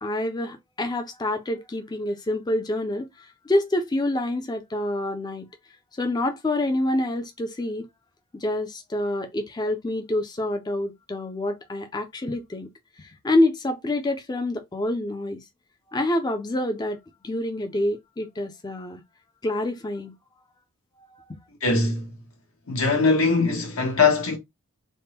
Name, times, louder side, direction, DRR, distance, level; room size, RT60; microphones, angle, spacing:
voice 1, 0.0-5.5 6.0-7.9 8.3-12.7 13.0-15.4 15.9-17.0 17.2-19.0 19.4-20.1, left 1 dB, 20° left, 0.4 m, -27 dB
voice 2, 21.6-22.1 22.7-24.4, left 4 dB, 80° left, 1.4 m, -21 dB
3.5 x 2.2 x 4.1 m
head